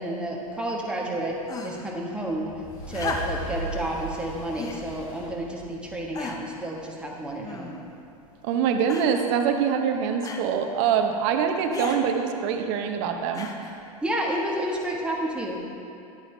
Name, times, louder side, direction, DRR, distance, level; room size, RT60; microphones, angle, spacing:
voice 1, 0.0-2.5 2.9-7.7 14.0-15.6, right 1 dB, 5° right, -2 dB, 1.4 m, -30 dB
sound 1, 1.5-2.0 2.9-3.6 4.5-4.9 5.6-5.7 6.1-6.6 7.4-8.0 8.9-9.3 10.2-10.5 11.7-12.0 13.3-13.8 14.8-14.9, left 4 dB, 20° left, 0.7 m, -35 dB
sound 2, 2.2-6.8, right 2 dB, 65° left, 2.0 m, -38 dB
voice 2, 8.4-13.5, right 7 dB, 50° right, 5 dB, 0.9 m, -24 dB
11.0 x 8.7 x 3.3 m, 2.6 s
hypercardioid pair, 95°, 19 cm